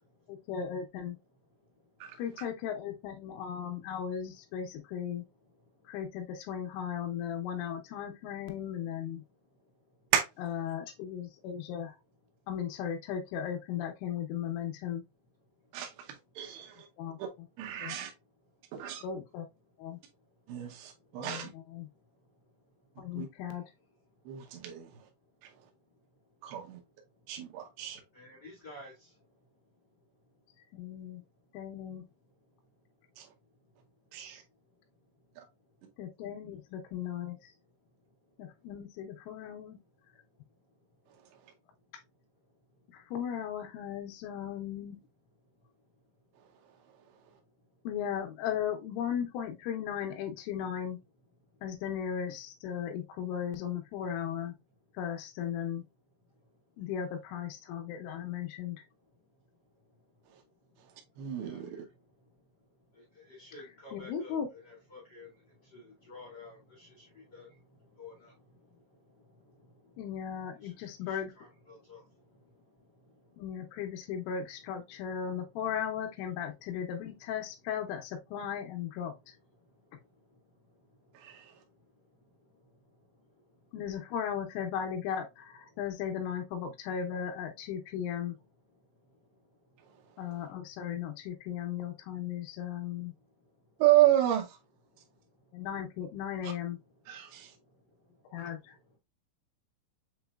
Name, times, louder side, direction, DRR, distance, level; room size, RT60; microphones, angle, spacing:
voice 1, 0.3-1.2 2.2-5.2 5.9-9.2 10.4-11.9 12.5-15.0 17.0-17.2 17.8-18.0 19.0-19.5 19.8-20.0 21.2-21.9 23.0-23.6 30.7-31.2 31.5-32.0 36.0-37.4 38.4-39.8 42.9-45.0 47.8-51.0 51.6-54.5 55.0-55.8 56.8-58.8 63.9-64.5 70.0-71.3 73.4-79.1 83.7-88.3 90.2-93.1 95.5-96.8 98.3-98.7, left 8 dB, 80° left, 3.4 m, -36 dB
voice 2, 16.4-16.9 17.2-17.3 17.6-18.1 18.7-19.0 20.5-21.5 23.2-23.3 24.3-24.9 26.4-26.8 27.3-28.0 33.2-33.3 34.1-34.4 61.2-61.7 81.2-81.4 93.8-94.5 96.4-96.5 97.1-97.5, right 13 dB, 80° right, 2.4 m, -29 dB
voice 3, 28.1-28.9 61.3-61.6 63.4-64.3 64.6-65.3 65.7-67.0 67.3-67.5 68.0-68.1 71.1-72.0, left 2 dB, 50° left, 1.2 m, -50 dB
7.3 x 3.0 x 2.3 m
omnidirectional pair, 5.7 m